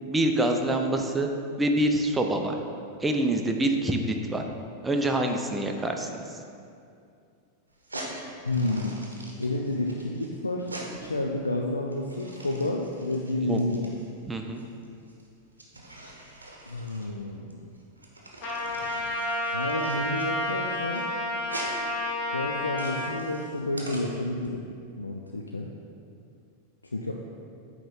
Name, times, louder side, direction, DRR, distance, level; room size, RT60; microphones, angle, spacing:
voice 1, 0.0-1.3 1.6-2.6 3.0-4.4 4.8-6.1 13.4-13.6 14.3-14.6, right 1 dB, 10° right, 3 dB, 0.5 m, -26 dB
sound 1, 7.7-24.5, right 1 dB, 80° right, 0.8 m, -44 dB
voice 2, 8.4-9.0 9.4-10.7 11.0-13.9 16.7-17.7 19.5-21.1 22.3-24.7 25.0-25.7 26.9-27.1, left 2 dB, 80° left, 0 dB, 0.3 m, -30 dB
Trumpet, 18.4-23.1, left 1 dB, 35° left, 1.2 m, -30 dB
8.7 x 3.1 x 3.8 m, 2.4 s
figure-of-eight pair, 90°, 0 cm